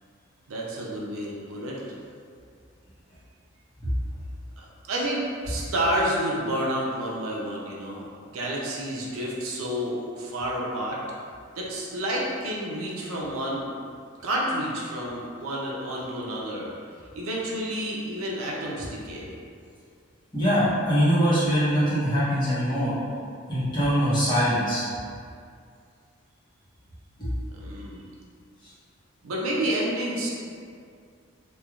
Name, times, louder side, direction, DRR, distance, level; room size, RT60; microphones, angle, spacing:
voice 1, 0.5-1.8 4.6-11.0 11.5-13.7 14.2-16.7 17.1-19.3 27.5-28.0 29.2-30.3, right 1 dB, 80° right, -3 dB, 0.5 m, -30 dB
voice 2, 20.3-22.9 23.5-24.9 27.2-27.3 28.6-28.7, equal, 20° left, -11 dB, 0.8 m, -23 dB
3.1 x 2.2 x 2.3 m, 2.2 s
head